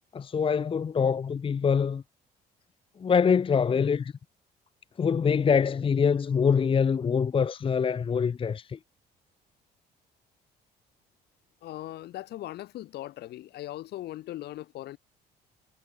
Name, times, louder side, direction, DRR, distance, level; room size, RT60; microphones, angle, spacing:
voice 1, 0.1-2.0 3.0-4.1 5.0-8.8, left 6 dB, 30° left, 1.1 m, -24 dB
voice 2, 11.6-15.0, left 15 dB, 75° left, 7.6 m, -39 dB
cardioid pair, 110°, 17 cm